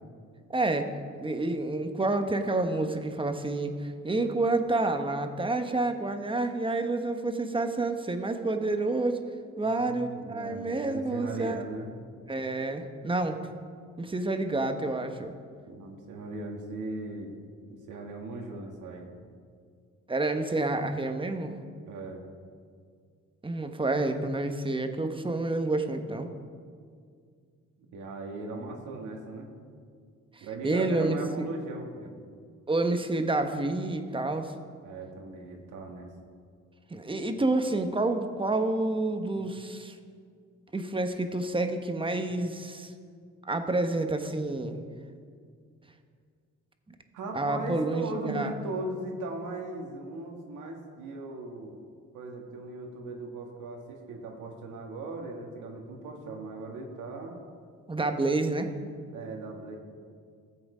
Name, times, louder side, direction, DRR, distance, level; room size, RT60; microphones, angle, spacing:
voice 1, 0.5-0.9 1.2-9.2 9.6-11.6 12.3-13.4 14.0-15.3 20.1-21.5 23.4-26.3 30.4-31.5 32.7-34.5 36.9-40.0 40.7-42.9 43.4-44.8 46.9-47.0 47.3-48.6 57.9-58.7, right 2 dB, 15° right, 6 dB, 1.0 m, -29 dB
voice 2, 9.6-11.9 15.7-17.3 17.7-19.1 21.9-22.2 27.9-29.5 30.4-32.2 34.8-36.1 39.4-39.5 42.2-42.3 47.1-51.8 52.1-57.4 59.1-59.8, right 2 dB, 85° right, 1 dB, 1.8 m, -38 dB
14.5 x 7.9 x 5.0 m, 2.1 s
cardioid pair, 90°, 30 cm